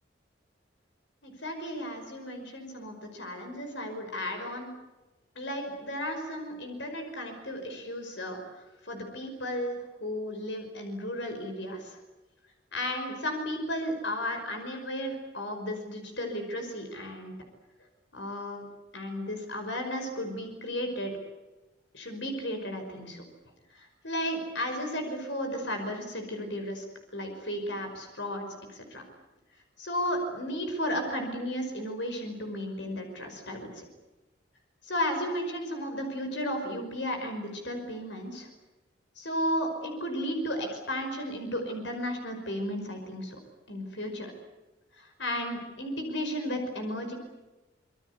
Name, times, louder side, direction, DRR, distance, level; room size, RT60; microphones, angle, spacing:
voice 1, 1.2-4.7 5.4-12.0 12.7-17.4 18.1-18.6 18.9-21.1 21.9-23.2 23.7-26.8 27.1-29.0 29.8-33.8 34.8-38.5 39.2-43.4 43.7-44.3 44.9-47.1, equal, 65° left, 5 dB, 5.5 m, -34 dB
26.0 x 23.0 x 8.3 m, 1.1 s
head